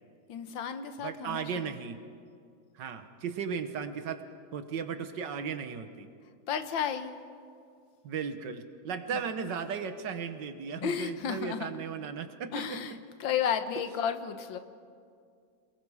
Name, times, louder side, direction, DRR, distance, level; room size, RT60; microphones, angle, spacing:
voice 1, 0.3-1.7 6.5-7.1 10.8-11.7 12.5-14.6, left 8 dB, 85° left, 9 dB, 1.8 m, -33 dB
voice 2, 1.0-2.0 2.7-4.2 4.5-6.1 8.0-13.0, right 6 dB, 70° right, 9 dB, 1.7 m, -36 dB
28.0 x 20.5 x 4.9 m, 2.3 s
omnidirectional pair, 2.0 m